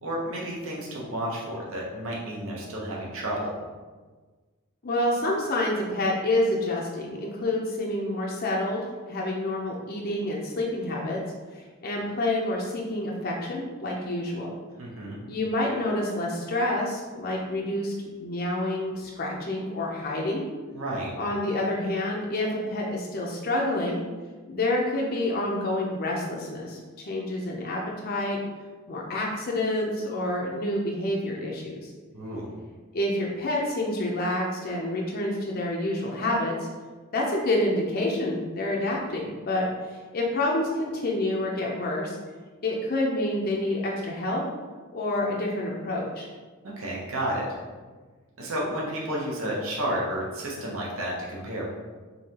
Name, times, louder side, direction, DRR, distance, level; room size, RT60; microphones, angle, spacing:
voice 1, 0.0-3.5 14.8-15.2 20.7-21.1 32.1-32.5 46.6-47.5 48.4-51.7, right 1 dB, 65° right, -4 dB, 0.8 m, -31 dB
voice 2, 4.8-11.2 11.5-14.6 15.3-17.9 18.2-20.4 21.2-24.0 24.5-28.4 28.9-31.9 32.9-36.7 37.1-42.2 42.6-44.4 44.9-46.3, left 1 dB, 45° left, -2 dB, 0.5 m, -28 dB
5.4 x 2.8 x 2.8 m, 1.4 s
head